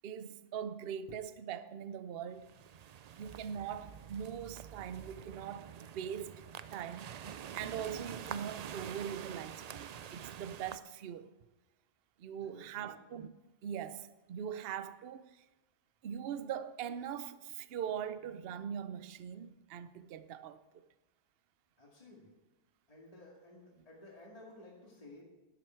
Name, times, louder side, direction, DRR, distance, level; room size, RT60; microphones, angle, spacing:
voice 1, 0.0-2.5 3.2-6.4 6.7-7.3 7.5-11.3 12.2-13.3 13.6-15.5 16.0-20.6, right 8 dB, 60° right, 0.8 m, -41 dB
sound 1, 2.4-10.8, right 8 dB, 80° right, 0.3 m, -47 dB
voice 2, 12.4-12.9 21.8-22.3 22.9-25.2, left 2 dB, 30° left, 2.4 m, -55 dB
12.0 x 11.0 x 4.6 m
omnidirectional pair, 1.2 m